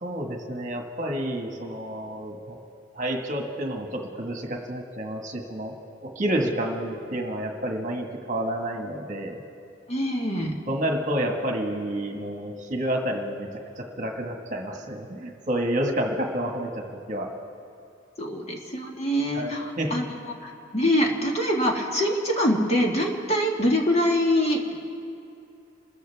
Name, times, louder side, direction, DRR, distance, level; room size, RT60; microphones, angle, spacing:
voice 1, 0.0-2.6 2.9-5.7 6.0-9.4 10.7-13.5 13.8-17.3 19.3-20.0, right 1 dB, 40° right, 2 dB, 1.6 m, -29 dB
voice 2, 9.9-10.5 18.2-20.1 20.4-24.7, equal, 35° left, 0 dB, 1.8 m, -24 dB
28.0 x 14.5 x 3.5 m, 2.7 s
head